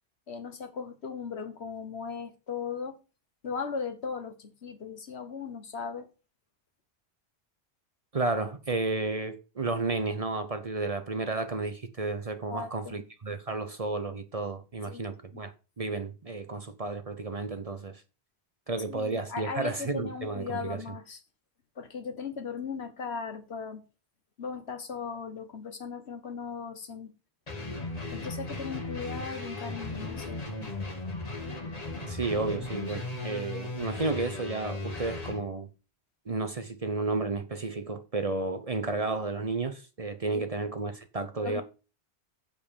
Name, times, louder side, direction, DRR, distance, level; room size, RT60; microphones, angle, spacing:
voice 1, 0.3-3.0 3.4-6.1 12.5-13.1 14.9-15.1 18.9-21.2 21.7-23.8 24.4-27.1 28.1-30.4 40.3-40.4 41.4-41.6, left 5 dB, 75° left, 1.6 m, -37 dB
voice 2, 8.1-18.0 18.7-20.8 32.0-35.7 36.3-41.6, right 3 dB, 35° right, 0.8 m, -32 dB
sound 1, 27.5-35.4, left 2 dB, 35° left, 1.6 m, -37 dB
7.6 x 5.2 x 6.8 m
omnidirectional pair, 1.1 m